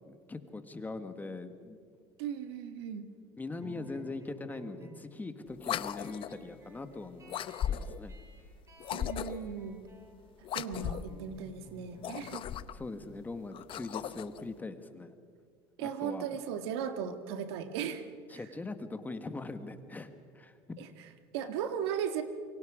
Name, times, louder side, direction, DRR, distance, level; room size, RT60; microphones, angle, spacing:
voice 1, 0.1-1.8 3.4-7.3 7.7-8.2 12.7-15.1 15.8-16.3 18.3-20.8, left 3 dB, 10° left, 9 dB, 1.4 m, -41 dB
voice 2, 2.2-3.1 8.9-9.8 10.4-12.4 15.8-18.4 20.8-22.2, right 8 dB, 85° right, 8 dB, 1.8 m, -37 dB
sound 1, 3.6-14.7, right 1 dB, 25° right, 4.7 m, -56 dB
sound 2, 5.6-6.4 7.3-8.1 8.8-9.5 10.4-11.2 11.9-12.9 13.5-14.4, left 10 dB, 40° left, 0.8 m, -37 dB
28.5 x 24.0 x 5.0 m, 2.1 s
supercardioid pair, 125°, 13 cm